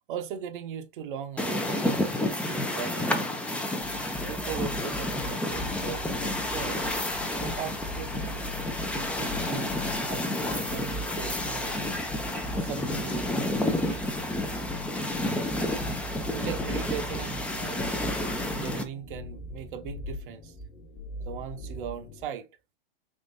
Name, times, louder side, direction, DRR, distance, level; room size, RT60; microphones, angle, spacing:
voice 1, 0.1-3.2 4.3-6.8 7.4-9.7 10.0-12.0 12.5-13.3 13.7-14.0 16.3-18.0 18.5-20.6 21.3-22.5, right 8 dB, 60° right, 0.8 m, -39 dB
sound 1, 1.4-18.8, left 1 dB, 5° left, 0.4 m, -30 dB
sound 2, 3.8-22.3, left 1 dB, 25° left, 1.2 m, -40 dB
3.6 x 3.1 x 2.6 m
hypercardioid pair, 125°, 29 cm